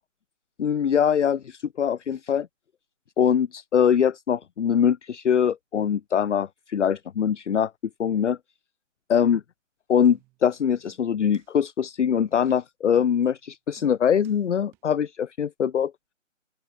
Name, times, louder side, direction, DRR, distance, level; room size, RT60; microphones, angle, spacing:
voice 1, 0.6-2.5 3.2-7.7 8.0-8.4 9.1-9.4 9.9-15.9, left 8 dB, 65° left, 0.6 m, -23 dB
sound 1, 10.0-10.5 10.9-11.5 11.8-11.9 12.3-12.5 12.9-13.4 13.8-14.4 14.7-14.8, right 21 dB, 5° right, 1.7 m, -58 dB
open air
hypercardioid pair, 170°, 39 cm